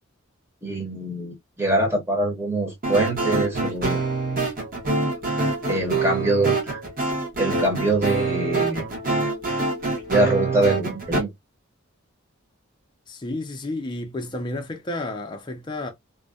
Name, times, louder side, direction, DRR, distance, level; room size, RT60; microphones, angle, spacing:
voice 1, 0.6-4.0 5.7-6.8 7.4-8.8 10.1-11.3, right 1 dB, 10° right, 0.8 m, -24 dB
sound 1, 2.8-11.2, right 3 dB, 40° right, 0.9 m, -25 dB
voice 2, 13.1-15.9, left 2 dB, 20° left, 0.4 m, -31 dB
2.6 x 2.1 x 2.3 m
head